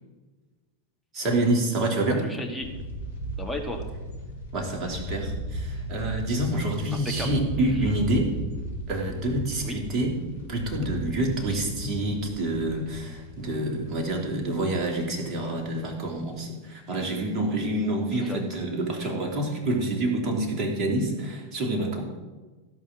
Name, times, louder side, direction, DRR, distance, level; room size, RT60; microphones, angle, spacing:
voice 1, 1.1-2.2 4.5-8.3 8.9-10.2 10.5-22.0, right 1 dB, 30° right, 0 dB, 3.1 m, -27 dB
voice 2, 2.2-2.7 3.4-3.8 6.9-7.4 9.6-9.8 11.5-11.6 18.1-18.5 19.0-19.1, left 1 dB, ahead, 0 dB, 2.0 m, -35 dB
sound 1, 2.6-16.6 17.0-17.1 17.3-17.6 18.5-18.9 19.3-19.4 19.7-19.8, right 1 dB, 70° left, 3.2 m, -37 dB
16.0 x 5.6 x 7.5 m, 1.3 s
figure-of-eight pair, 90°, 0 cm